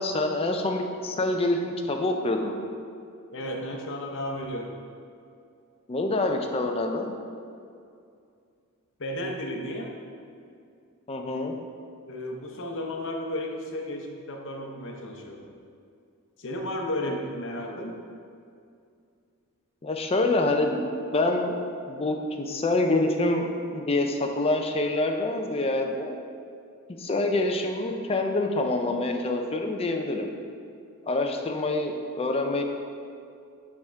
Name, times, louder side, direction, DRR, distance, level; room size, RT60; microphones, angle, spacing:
voice 1, 0.0-2.5 5.9-7.1 11.1-11.5 17.8-17.9 19.8-20.8 21.1-21.5 21.9-23.4 23.7-26.2 27.0-30.3 31.0-32.6, left 2 dB, 25° left, 3 dB, 0.5 m, -26 dB
voice 2, 3.3-4.7 9.0-10.0 12.0-15.5 16.4-17.9, left 1 dB, 60° left, 1 dB, 0.8 m, -33 dB
8.8 x 3.6 x 4.5 m, 2.4 s
head